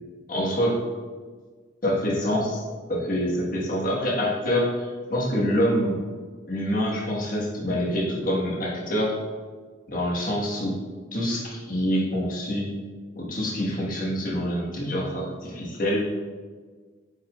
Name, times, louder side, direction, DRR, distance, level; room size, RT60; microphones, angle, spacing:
voice 1, 0.3-0.8 1.8-2.6 2.9-6.0 6.5-9.2 9.9-10.7 11.1-12.7 13.1-16.0, equal, 45° left, -4 dB, 1.6 m, -26 dB
8.6 x 4.9 x 2.5 m, 1.5 s
head